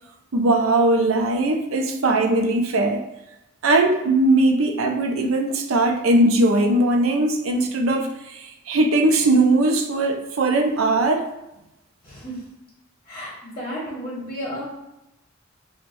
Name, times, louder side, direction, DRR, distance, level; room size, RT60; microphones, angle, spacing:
voice 1, 0.3-3.0 3.6-11.2, right 2 dB, 75° right, 4 dB, 0.5 m, -19 dB
voice 2, 12.0-12.4 13.0-14.6, equal, 20° left, -7 dB, 0.9 m, -33 dB
4.5 x 2.1 x 2.6 m, 0.91 s
head